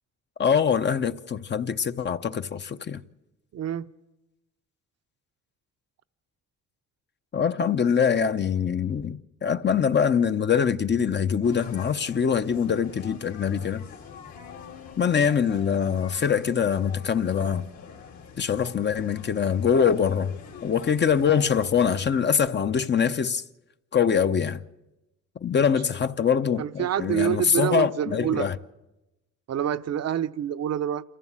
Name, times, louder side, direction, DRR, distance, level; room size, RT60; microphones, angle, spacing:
voice 1, 0.4-3.0 7.3-13.9 15.0-17.6 18.4-20.3 20.6-23.4 23.9-24.6 25.4-28.6, left 7 dB, 35° left, 0.8 m, -24 dB
voice 2, 3.5-3.9 26.6-28.5 29.5-31.0, right 9 dB, 55° right, 0.8 m, -27 dB
sound 1, 11.4-22.1, left 6 dB, 65° left, 2.4 m, -45 dB
27.5 x 15.0 x 7.4 m
cardioid pair, 90°, 30 cm